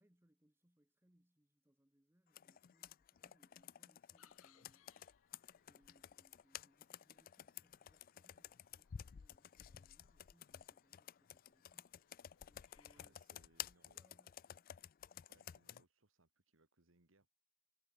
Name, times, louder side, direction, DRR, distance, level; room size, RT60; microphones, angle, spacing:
voice 1, 0.0-5.3 5.6-13.5 13.9-14.7, right 1 dB, 10° right, 1.0 m, -76 dB
Computer keyboard, 2.3-15.8, left 10 dB, 45° left, 0.3 m, -54 dB
sound 1, 4.1-13.0, left 8 dB, 85° left, 1.1 m, -76 dB
voice 2, 13.0-14.0 15.3-17.3, right 2 dB, 70° right, 2.1 m, -73 dB
head